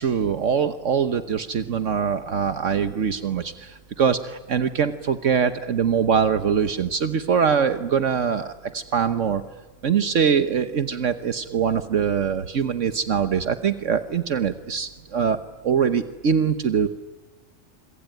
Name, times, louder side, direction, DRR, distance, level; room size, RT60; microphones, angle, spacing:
voice 1, 0.0-9.4 9.8-15.4 15.6-16.9, right 7 dB, 70° right, 9 dB, 1.4 m, -23 dB
27.0 x 24.5 x 9.1 m, 1.2 s
omnidirectional pair, 1.4 m